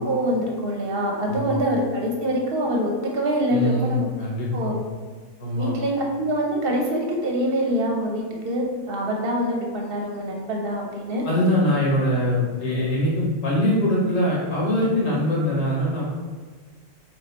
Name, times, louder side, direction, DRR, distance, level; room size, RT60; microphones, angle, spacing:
voice 1, 0.0-4.1 4.5-4.8 5.6-11.2, equal, 50° right, 0 dB, 0.9 m, -25 dB
voice 2, 1.3-1.6 3.5-4.8 5.4-5.7 11.3-16.1, left 1 dB, 80° left, -5 dB, 1.8 m, -23 dB
4.1 x 3.2 x 4.0 m, 1.5 s
omnidirectional pair, 1.3 m